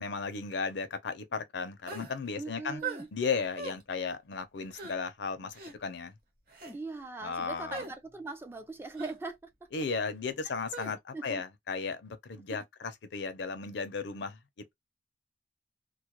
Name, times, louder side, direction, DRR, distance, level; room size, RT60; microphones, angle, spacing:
voice 1, 0.0-2.8 3.1-5.5 5.8-6.1 7.2-7.8 9.7-14.4, left 5 dB, 70° left, 0.5 m, -35 dB
sound 1, 1.9-2.1 2.8-3.1 3.6-3.8 4.7-4.9 5.5-5.7 6.5-6.8 7.7-7.9 8.9-9.2 10.7-10.9, right 4 dB, 50° right, 1.0 m, -39 dB
voice 2, 2.4-3.1 6.7-9.5 11.1-11.4 12.5-12.6, right 3 dB, 15° right, 0.3 m, -40 dB
2.3 x 2.1 x 2.9 m
head